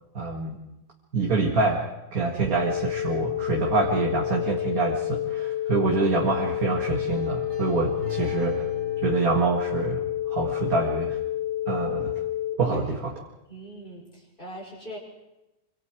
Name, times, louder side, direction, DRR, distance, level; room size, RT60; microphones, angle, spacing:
voice 1, 0.1-0.6 1.1-1.8 2.1-8.6 9.0-10.0 10.3-11.2 11.7-12.2 12.6-13.1, right 3 dB, 75° right, 0 dB, 2.5 m, -26 dB
sound 1, 2.5-12.5, left 12 dB, 55° left, 3.8 m, -29 dB
sound 2, 7.1-12.0 12.9-13.0, left 4 dB, 60° right, 3.0 m, -42 dB
voice 2, 13.5-15.0, equal, 35° left, -2 dB, 6.3 m, -41 dB
25.5 x 25.0 x 4.7 m, 0.98 s
omnidirectional pair, 1.5 m